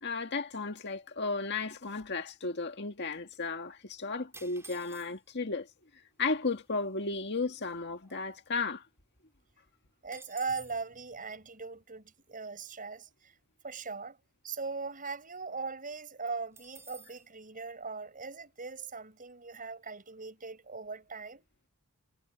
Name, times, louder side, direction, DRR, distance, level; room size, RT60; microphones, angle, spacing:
voice 1, 0.0-5.7 6.2-8.8, left 4 dB, 50° left, 1.9 m, -34 dB
sound 1, 4.3-5.4 6.2-6.3 6.5-6.8 7.3-8.8 9.1-9.2 9.5-10.9 16.5-17.3, right 3 dB, 10° right, 4.8 m, -53 dB
voice 2, 10.0-13.3 13.6-14.2 14.4-21.4, right 4 dB, 40° right, 7.8 m, -40 dB
head